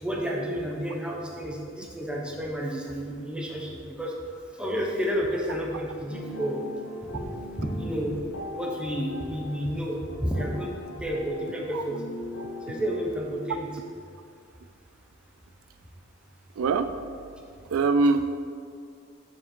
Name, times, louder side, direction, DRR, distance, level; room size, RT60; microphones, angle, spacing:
voice 1, 0.0-4.1 4.6-6.6 7.1-7.2 7.6-8.2 8.5-12.0 12.7-13.7, equal, 5° right, -2 dB, 0.8 m, -31 dB
sound 1, 6.1-13.0, left 2 dB, 90° left, 0.9 m, -39 dB
voice 2, 16.6-16.9 17.7-18.3, right 3 dB, 85° right, 10 dB, 0.3 m, -22 dB
6.9 x 5.1 x 4.3 m, 2.3 s
head